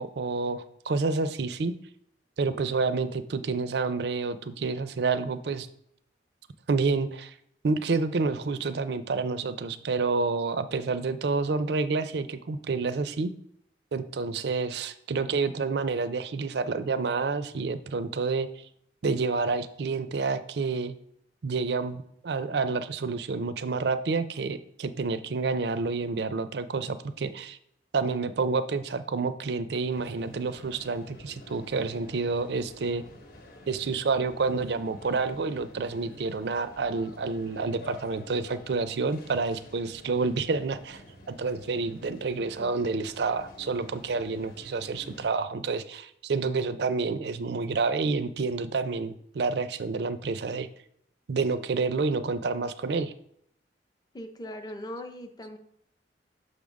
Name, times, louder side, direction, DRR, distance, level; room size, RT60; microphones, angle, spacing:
voice 1, 0.0-1.7 2.4-5.7 6.7-7.3 7.6-13.3 13.9-18.5 19.0-21.0 21.4-27.6 27.9-33.0 33.7-41.0 41.3-50.7 51.3-53.1, right 4 dB, 65° right, 12 dB, 0.4 m, -29 dB
sound 1, 29.9-45.3, left 1 dB, 55° left, 0.9 m, -49 dB
voice 2, 54.1-55.6, left 1 dB, 20° left, 6 dB, 0.6 m, -39 dB
6.5 x 3.6 x 5.1 m, 0.73 s
head